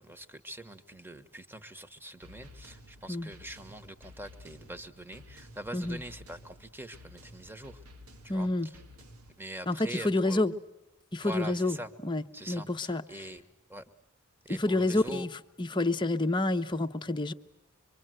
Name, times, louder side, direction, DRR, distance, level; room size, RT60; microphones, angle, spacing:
voice 1, 0.0-7.8 8.2-8.8 9.4-10.4 11.2-11.9 12.3-13.4 13.7-13.9 14.4-15.3, right 1 dB, 10° right, 8 dB, 1.4 m, -43 dB
sound 1, 2.2-9.4, left 1 dB, 75° right, 1.8 m, -53 dB
voice 2, 8.3-8.7 9.7-10.5 11.1-11.8 12.0-13.0 14.5-15.3 15.6-17.3, left 2 dB, 20° left, 6 dB, 1.0 m, -28 dB
25.5 x 24.5 x 7.9 m, 0.90 s
head